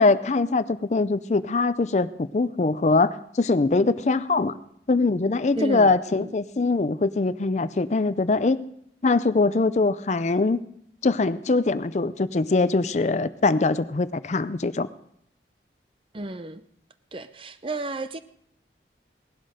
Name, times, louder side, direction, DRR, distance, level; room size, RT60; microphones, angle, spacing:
voice 1, 0.0-4.5 4.9-8.6 9.0-10.6 11.0-14.9, left 3 dB, 40° left, 0.4 m, -22 dB
voice 2, 5.5-6.4 16.1-16.6 17.1-18.2, right 2 dB, 30° right, 0.6 m, -33 dB
18.5 x 11.5 x 5.0 m
head